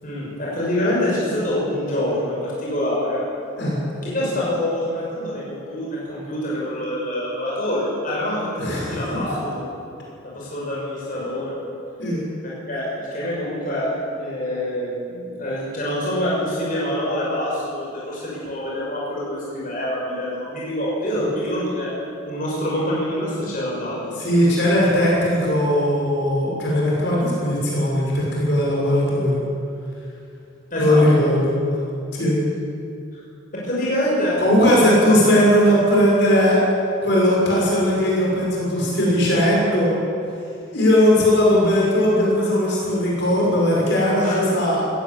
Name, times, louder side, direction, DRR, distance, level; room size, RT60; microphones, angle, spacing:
voice 1, 0.0-3.2 4.0-9.6 10.2-11.5 12.7-13.9 14.2-21.9 22.2-24.1 30.7-31.1 33.1-33.2 33.5-34.4 44.2-44.3, left 1 dB, 40° left, -6 dB, 6.4 m, -26 dB
voice 2, 8.6-9.4 12.0-12.2 24.2-29.4 30.8-31.5 32.1-32.4 34.4-36.6 37.0-39.9 40.7-44.8, equal, 60° left, -4 dB, 6.6 m, -18 dB
20.0 x 16.5 x 8.7 m, 2.5 s
head